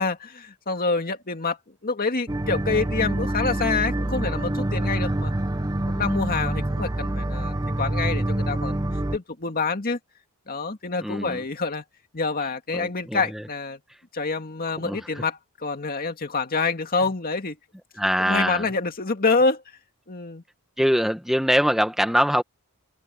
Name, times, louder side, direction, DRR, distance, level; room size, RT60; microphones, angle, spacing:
voice 1, 0.0-1.6 1.8-5.3 5.9-8.8 9.1-10.0 10.5-11.8 12.1-13.8 14.1-17.6 18.2-19.6 20.1-20.4, left 4 dB, 40° left, 2.1 m, -27 dB
sound 1, 2.3-9.2, right 1 dB, 15° right, 0.8 m, -26 dB
voice 2, 11.0-11.4 12.7-13.4 14.8-15.2 18.0-18.7 20.8-22.4, equal, ahead, 1.5 m, -23 dB
head